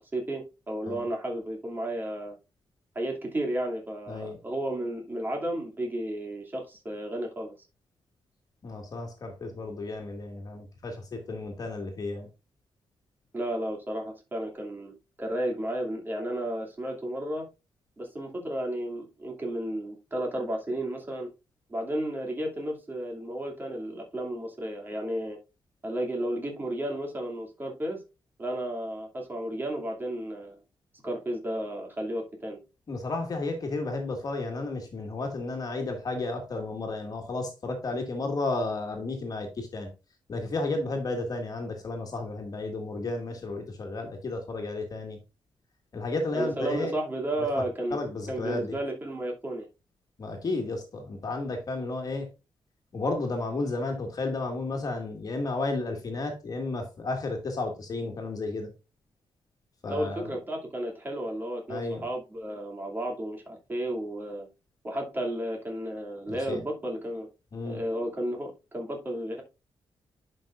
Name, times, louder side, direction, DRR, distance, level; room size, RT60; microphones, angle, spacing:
voice 1, 0.1-2.3 2.9-7.5 13.3-17.5 18.0-21.3 21.7-25.4 25.8-28.0 28.4-30.6 31.0-32.6 46.3-48.0 48.3-49.7 59.9-64.5 64.8-67.3 67.6-69.4, right 1 dB, 20° right, 2.5 m, -33 dB
voice 2, 4.1-4.4 8.6-12.3 32.9-39.9 40.3-45.2 45.9-46.9 47.6-47.7 47.9-48.7 50.2-52.3 52.9-58.7 59.8-60.3 61.7-62.1 66.3-66.6 67.5-67.8, left 2 dB, 45° left, 1.9 m, -32 dB
11.0 x 5.5 x 2.5 m
wide cardioid pair, 130°, 9 cm